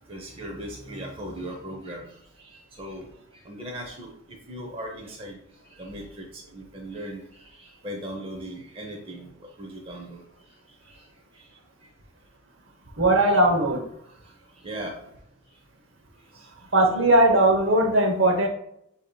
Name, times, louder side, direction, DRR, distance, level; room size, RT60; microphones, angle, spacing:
voice 1, 0.1-3.1 3.4-10.2 10.8-11.0 11.3-11.5 14.2-15.0 16.3-16.5, right 1 dB, 25° right, 0 dB, 0.7 m, -39 dB
voice 2, 13.0-13.9 16.7-18.5, right 1 dB, 60° right, 2 dB, 0.9 m, -19 dB
8.2 x 2.8 x 2.2 m, 0.75 s
head